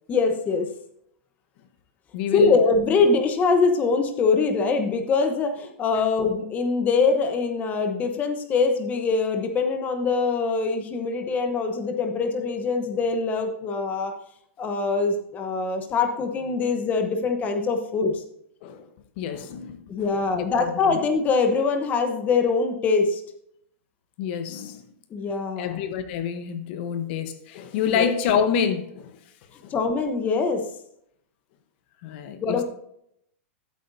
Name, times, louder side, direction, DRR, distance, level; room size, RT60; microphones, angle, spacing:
voice 1, 0.1-0.7 2.3-14.1 14.6-18.2 19.9-23.2 25.1-25.8 27.9-28.1 29.7-30.7 32.4-32.6, left 4 dB, 20° left, 1.0 m, -23 dB
voice 2, 2.1-2.6 18.6-18.9 19.2-20.1 20.3-21.0 24.2-24.8 25.6-29.2 32.0-32.6, left 7 dB, 50° left, 1.1 m, -27 dB
13.5 x 8.0 x 2.7 m
hypercardioid pair, 145°, 7 cm